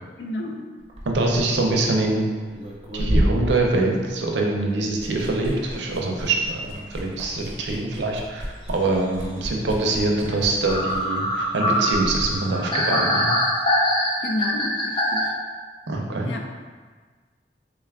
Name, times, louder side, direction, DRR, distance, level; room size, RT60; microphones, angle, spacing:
voice 1, 0.2-0.7 14.2-15.3 16.3-16.5, left 2 dB, 75° left, 3 dB, 0.4 m, -30 dB
Liquid, 0.8-4.5 4.8-12.4, equal, 35° right, 0.5 m, -31 dB
voice 2, 1.1-2.3 2.9-13.3 15.9-16.3, right 2 dB, 80° right, 0 dB, 0.5 m, -24 dB
sound 1, 10.3-10.4 10.7-15.2, equal, 25° left, 0.5 m, -23 dB
3.6 x 2.3 x 3.4 m, 1.5 s
head